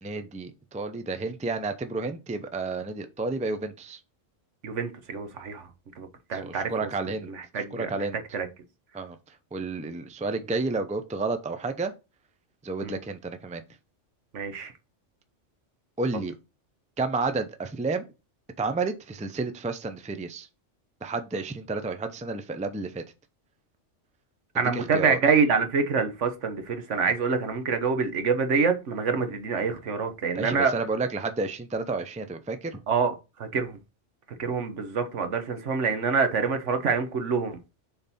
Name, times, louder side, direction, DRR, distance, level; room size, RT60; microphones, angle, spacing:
voice 1, 0.0-4.0 6.3-7.3 7.7-8.2 8.9-11.9 12.6-13.6 16.0-16.3 17.0-18.0 18.6-20.5 21.0-23.0 24.7-25.2 30.3-32.8, right 3 dB, 10° right, 0.5 m, -31 dB
voice 2, 4.6-5.7 6.0-6.9 7.4-8.1 8.3-8.5 12.8-12.9 14.3-14.7 24.5-30.7 32.9-33.1 33.4-33.8 34.4-37.6, right 5 dB, 75° right, 1.4 m, -26 dB
7.0 x 4.0 x 4.2 m
omnidirectional pair, 1.2 m